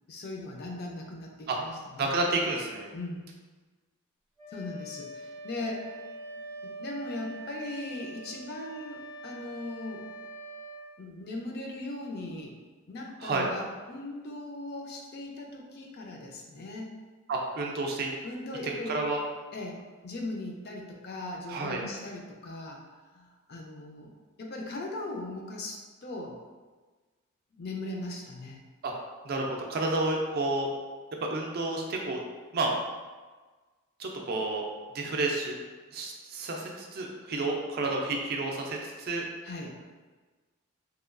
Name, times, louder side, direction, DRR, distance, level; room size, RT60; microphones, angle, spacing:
voice 1, 0.1-2.1 2.9-3.2 4.5-5.9 6.6-10.1 11.0-12.5 12.9-16.9 18.2-18.9 19.5-22.8 23.1-24.1 24.4-26.4 27.5-28.6 39.4-39.7, left 2 dB, 50° left, 0 dB, 0.4 m, -39 dB
voice 2, 2.0-2.9 13.2-13.5 17.3-18.1 18.6-19.2 21.5-21.8 28.8-28.9 29.2-30.7 31.2-32.2 32.5-32.7 34.0-34.7 34.9-35.6 35.9-39.3, right 2 dB, 45° right, 0 dB, 0.4 m, -30 dB
Wind instrument woodwind instrument, 4.4-10.9, right 1 dB, 85° left, 1.5 m, -43 dB
2.9 x 2.3 x 2.4 m, 1.3 s
head